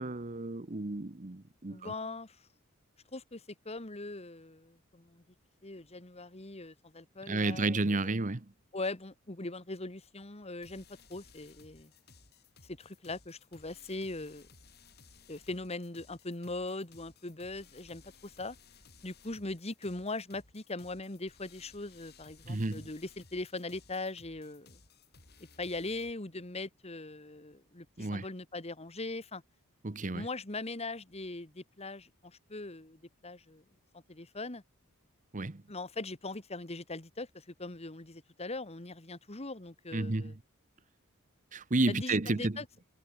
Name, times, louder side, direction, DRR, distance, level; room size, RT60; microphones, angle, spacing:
voice 1, 0.0-1.9 7.3-8.5 22.5-22.8 28.0-28.2 29.8-30.3 35.3-35.6 39.9-40.3 41.5-42.6, right 2 dB, 35° right, 1.0 m, -31 dB
voice 2, 1.7-2.4 3.1-5.2 5.6-8.2 8.7-10.8 11.1-11.9 12.6-14.5 15.3-18.6 19.0-24.8 25.6-29.4 30.1-33.6 33.9-34.6 35.7-40.4 41.9-42.7, left 2 dB, 30° left, 1.8 m, -40 dB
sound 1, 10.6-26.1, left 4 dB, 50° left, 4.9 m, -59 dB
head